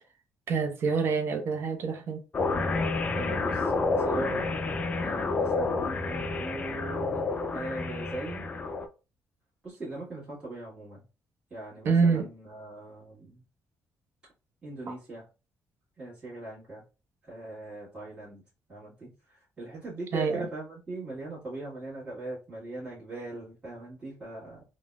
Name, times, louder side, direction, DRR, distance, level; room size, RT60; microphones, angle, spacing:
voice 1, 0.5-2.2 11.8-12.3 14.9-15.0 20.1-20.5, right 5 dB, 50° right, 0.6 m, -26 dB
sound 1, 2.3-8.9, left 3 dB, 30° left, 0.3 m, -29 dB
voice 2, 3.1-4.5 5.0-8.5 9.6-11.0 11.5-13.4 14.6-15.3 16.0-16.8 17.2-18.4 18.7-24.6, right 2 dB, 20° right, 1.4 m, -40 dB
3.8 x 2.0 x 2.3 m
cardioid pair, 135°, 5 cm